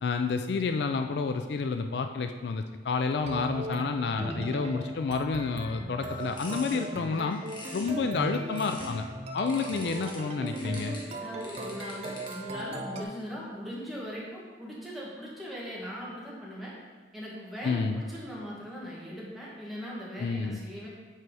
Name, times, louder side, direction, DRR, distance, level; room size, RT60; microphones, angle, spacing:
voice 1, 0.0-7.4 7.7-9.1 9.3-11.0 17.6-18.0 20.2-20.6, left 4 dB, 65° left, 7 dB, 0.4 m, -29 dB
sound 1, 3.2-13.0, right 1 dB, 35° right, 0.7 m, -38 dB
sound 2, 6.0-9.0 9.5-12.6, left 1 dB, 25° left, 1.3 m, -47 dB
voice 2, 11.1-16.7 17.1-20.9, equal, ahead, -7 dB, 1.7 m, -40 dB
7.6 x 4.6 x 4.7 m, 1.4 s
head